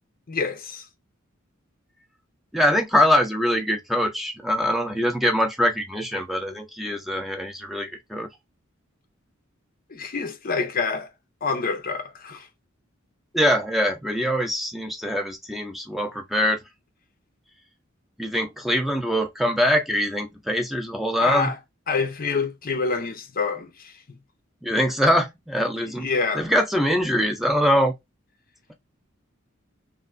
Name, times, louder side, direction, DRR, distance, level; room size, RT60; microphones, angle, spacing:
voice 1, 0.3-0.9 9.9-11.1 11.4-12.5 21.2-21.6 21.9-24.2 25.8-26.5, left 4 dB, 45° left, 0.6 m, -27 dB
voice 2, 2.5-8.3 13.3-16.6 18.2-21.5 24.6-26.1 26.3-27.9, equal, ahead, 0.7 m, -23 dB
3.1 x 2.7 x 2.5 m
head